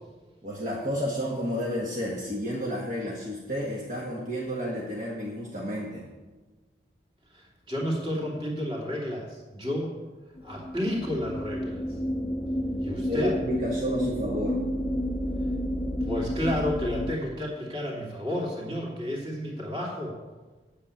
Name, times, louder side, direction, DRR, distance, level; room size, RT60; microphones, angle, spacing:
voice 1, 0.4-6.0 12.9-14.6, equal, 45° right, -3 dB, 1.4 m, -31 dB
voice 2, 7.3-9.9 10.4-11.8 12.8-13.4 16.0-20.1, left 1 dB, 25° right, -3 dB, 2.8 m, -31 dB
sound 1, 10.4-17.1, equal, 15° left, 0.5 m, -30 dB
8.5 x 7.0 x 8.6 m, 1.3 s
head